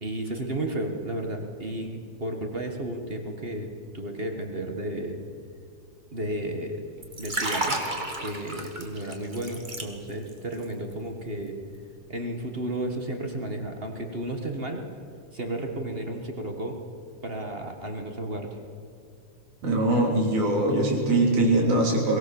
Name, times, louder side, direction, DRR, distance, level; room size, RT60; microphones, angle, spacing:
voice 1, 0.0-3.7 3.9-5.2 6.1-6.8 7.2-7.8 8.2-11.6 12.1-14.8 15.3-16.8 17.2-18.6, right 1 dB, 45° right, 4 dB, 0.7 m, -33 dB
Liquid, 7.0-10.3 10.6-10.9, right 2 dB, 20° right, 1.4 m, -32 dB
voice 2, 19.6-22.2, right 2 dB, 65° right, 0 dB, 4.8 m, -22 dB
22.5 x 18.0 x 7.1 m, 2.3 s
omnidirectional pair, 3.7 m